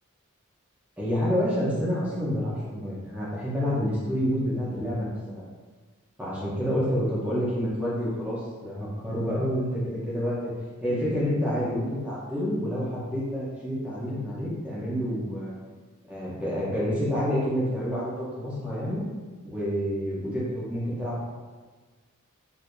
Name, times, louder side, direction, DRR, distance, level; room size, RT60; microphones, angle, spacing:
voice 1, 1.0-5.1 6.2-10.5 10.8-15.6 16.1-19.0 19.4-21.3, equal, 5° right, -8 dB, 0.9 m, -28 dB
4.5 x 2.8 x 2.6 m, 1.4 s
head